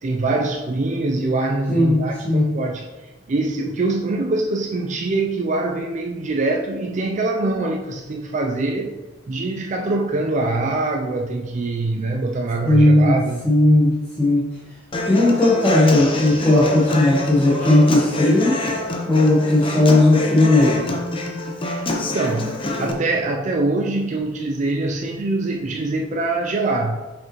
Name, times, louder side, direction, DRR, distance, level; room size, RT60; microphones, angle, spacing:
voice 1, 0.0-2.9 3.3-9.0 9.3-13.5 21.6-27.0, right 2 dB, 40° right, 1 dB, 0.4 m, -24 dB
voice 2, 1.7-2.6 12.6-13.2 13.4-14.5 15.1-18.6 19.1-20.8, left 2 dB, 10° left, -10 dB, 1.3 m, -16 dB
Human voice / Acoustic guitar, 14.9-22.9, left 2 dB, 30° left, 0.7 m, -26 dB
6.0 x 5.1 x 3.0 m, 1.1 s
head